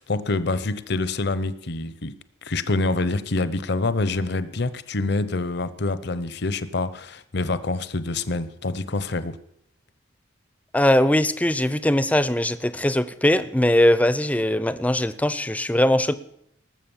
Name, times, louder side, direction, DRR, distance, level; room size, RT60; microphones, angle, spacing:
voice 1, 0.0-2.2 2.4-9.4, left 3 dB, 60° left, 15 dB, 0.8 m, -26 dB
voice 2, 10.7-16.1, left 1 dB, 10° left, 14 dB, 0.6 m, -20 dB
19.0 x 7.5 x 7.2 m, 0.75 s
head